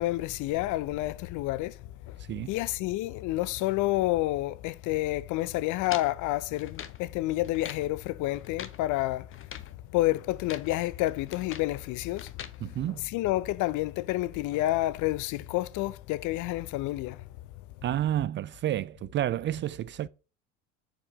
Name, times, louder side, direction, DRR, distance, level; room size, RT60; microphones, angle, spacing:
voice 1, 0.0-1.8 2.1-2.2 2.5-9.3 9.9-12.3 12.9-17.2, left 17 dB, 55° left, 0.7 m, -29 dB
sound 1, 5.8-7.0 7.4-7.9 8.3-8.8 9.3-9.7 10.3-10.7 11.1-11.7 12.2-12.6, left 8 dB, 35° left, 1.0 m, -43 dB
voice 2, 12.6-13.1 17.8-20.1, right 12 dB, 30° right, 0.4 m, -30 dB
7.2 x 5.1 x 5.0 m
hypercardioid pair, 70°, 37 cm